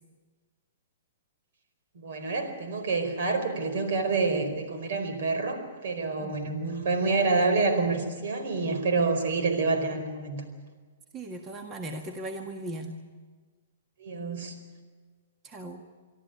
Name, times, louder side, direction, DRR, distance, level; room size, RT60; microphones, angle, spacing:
voice 1, 1.9-10.4 14.0-14.5, right 3 dB, 65° right, 6 dB, 4.8 m, -27 dB
voice 2, 11.1-13.0 15.4-15.8, right 1 dB, 25° right, 3 dB, 1.7 m, -38 dB
24.5 x 13.5 x 9.8 m, 1.4 s
hypercardioid pair, 135°, 0 cm